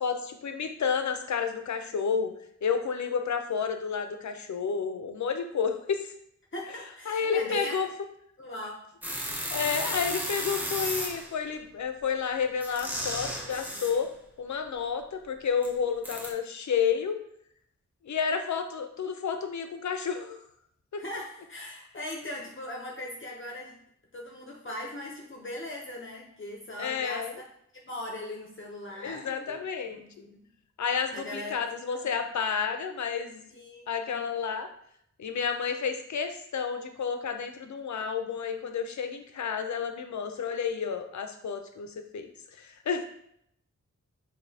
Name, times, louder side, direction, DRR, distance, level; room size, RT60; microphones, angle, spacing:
voice 1, 0.0-2.3 2.6-6.1 7.1-7.9 9.5-14.1 14.4-17.2 18.0-20.4 20.9-21.0 26.8-27.3 29.0-30.0 30.8-33.5 33.9-34.7 35.2-42.3 42.6-43.0, left 6 dB, 75° left, 7 dB, 0.5 m, -30 dB
voice 2, 6.5-7.9 8.4-8.9 21.0-23.7 24.1-27.3 27.8-29.6 29.9-30.5 31.1-31.6 31.9-32.1 33.5-34.2, left 1 dB, 45° left, -1 dB, 0.7 m, -39 dB
sound 1, 9.0-11.4 12.6-14.0 15.6-15.7 16.0-16.3, equal, 5° right, 0.7 m, -34 dB
6.0 x 2.7 x 2.7 m, 0.71 s
wide cardioid pair, 90°, 29 cm